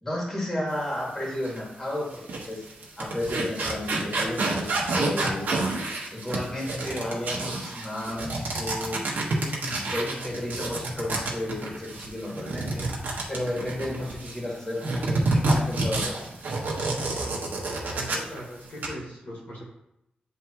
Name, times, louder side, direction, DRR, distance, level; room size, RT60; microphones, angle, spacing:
voice 1, 0.0-2.6 3.0-5.8 6.1-9.0 9.4-16.1, left 1 dB, 15° left, -4 dB, 1.9 m, -33 dB
sound 1, 1.4-1.6 2.1-14.4 14.8-18.4 18.6-18.9, right 2 dB, 70° right, 1.3 m, -29 dB
voice 2, 17.9-19.6, equal, 55° left, -4 dB, 1.9 m, -39 dB
9.3 x 3.6 x 3.0 m, 0.84 s
wide cardioid pair, 155°, 3 cm